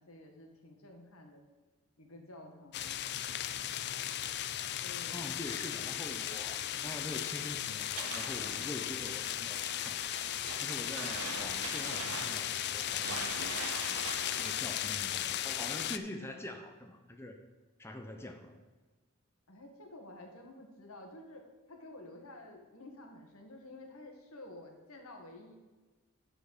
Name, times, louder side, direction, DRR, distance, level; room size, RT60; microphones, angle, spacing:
voice 1, 0.0-1.5 2.0-3.1 4.8-5.2 8.3-8.7 19.5-25.6, left 1 dB, 75° left, 3 dB, 1.7 m, -51 dB
sound 1, 2.7-16.0, left 11 dB, 50° left, 0.4 m, -36 dB
voice 2, 5.1-10.1 10.6-13.7 14.3-17.4 17.8-18.7, left 1 dB, 10° left, 4 dB, 0.7 m, -45 dB
sound 2, 7.9-14.5, right 7 dB, 75° right, 0.6 m, -44 dB
10.0 x 4.4 x 7.1 m, 1.3 s
head